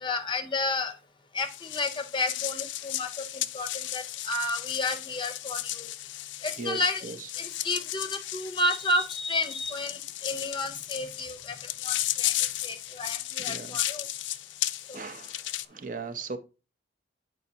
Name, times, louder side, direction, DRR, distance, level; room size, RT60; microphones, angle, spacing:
voice 1, 0.0-0.9 1.3-5.9 6.4-7.0 7.4-11.6 11.8-12.3 12.6-14.1, left 2 dB, 25° left, 0.6 m, -31 dB
sound 1, 1.4-15.7, left 14 dB, 75° left, 0.4 m, -34 dB
voice 2, 6.6-7.3 13.4-13.9 14.9-16.4, right 4 dB, 45° right, 0.6 m, -38 dB
8.2 x 5.2 x 2.8 m
head